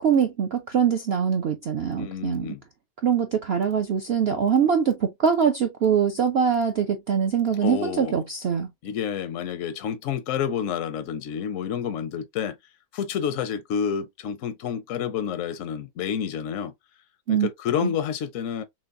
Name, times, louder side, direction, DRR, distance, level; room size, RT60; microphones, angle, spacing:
voice 1, 0.0-2.5 3.0-8.7 17.3-17.5 17.8-17.9, right 7 dB, 80° right, 0.5 m, -23 dB
voice 2, 2.0-2.6 7.6-8.2 8.8-12.6 12.9-16.7 17.3-18.6, left 8 dB, 70° left, 0.7 m, -29 dB
6.0 x 2.3 x 2.4 m
omnidirectional pair, 1.9 m